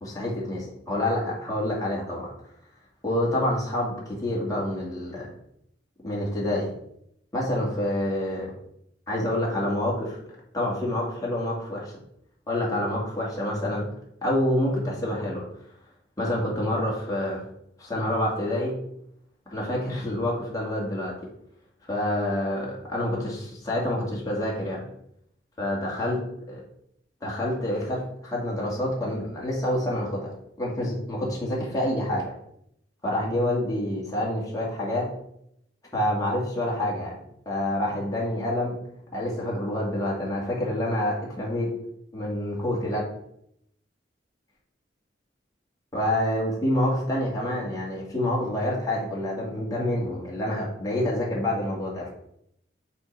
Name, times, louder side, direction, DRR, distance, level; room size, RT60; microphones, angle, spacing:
voice 1, 0.0-2.3 3.0-5.3 6.0-6.7 7.3-8.5 9.1-10.2 10.5-11.9 12.5-13.9 14.2-15.5 16.2-17.4 17.8-18.7 19.5-21.2 21.9-24.9 25.6-26.2 26.5-26.6 27.2-30.3 30.6-32.3 33.0-35.1 35.9-37.2 37.5-38.8 39.1-41.7 42.1-43.0 45.9-52.1, left 1 dB, 20° left, -4 dB, 2.2 m, -27 dB
8.2 x 3.8 x 4.6 m, 0.74 s
head